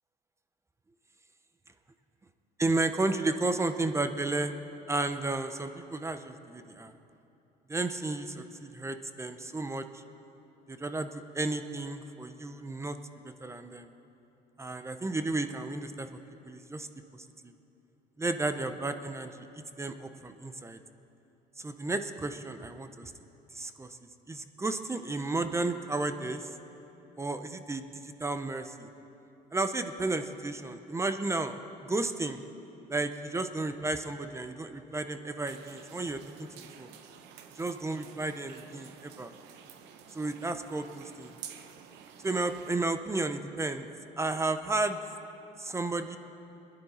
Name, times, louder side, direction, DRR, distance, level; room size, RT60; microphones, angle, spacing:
voice 1, 2.6-4.5 4.9-6.9 7.7-10.0 10.7-13.0 13.4-13.9 14.6-16.1 16.4-16.9 17.1-17.5 18.2-19.5 19.8-20.8 21.6-23.1 23.5-24.0 24.3-26.5 27.2-28.9 29.5-32.4 32.9-36.5 36.8-36.9 37.6-39.3 40.1-41.3 42.2-43.9 44.2-45.0 45.6-46.2, right 2 dB, 15° right, 9 dB, 0.6 m, -33 dB
sound 1, 35.5-42.7, right 8 dB, 90° right, 0.9 m, -50 dB
21.0 x 10.5 x 4.3 m, 2.9 s
cardioid pair, 110°, 17 cm